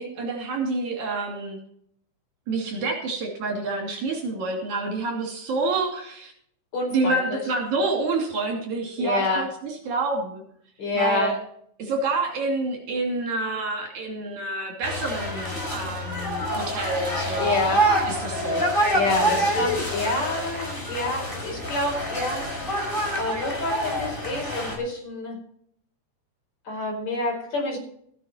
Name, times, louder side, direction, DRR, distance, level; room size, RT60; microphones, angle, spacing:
voice 1, 0.0-1.6 2.5-6.3 6.9-10.4 10.9-11.4 11.8-17.6 18.1-18.6 19.1-19.7, right 3 dB, 70° right, 1 dB, 4.1 m, -28 dB
voice 2, 6.7-7.4 9.0-9.5 10.8-11.3 17.4-17.9 18.9-22.5 23.2-25.4 26.7-27.8, left 2 dB, 60° left, 0 dB, 6.1 m, -28 dB
sound 1, 14.8-24.8, equal, 15° left, 3.9 m, -26 dB
15.0 x 9.3 x 4.5 m, 0.67 s
omnidirectional pair, 3.6 m